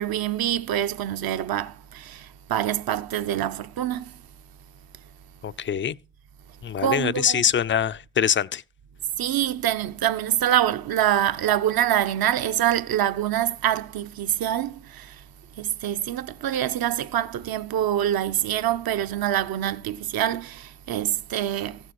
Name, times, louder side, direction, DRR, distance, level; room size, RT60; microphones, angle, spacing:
voice 1, 0.0-2.2 2.5-4.0 6.8-7.4 9.2-15.1 15.6-21.8, right 11 dB, 55° right, 0.9 m, -25 dB
voice 2, 5.4-6.0 6.6-8.6, left 8 dB, 30° left, 0.5 m, -24 dB
15.0 x 6.6 x 4.7 m
supercardioid pair, 70°, 42 cm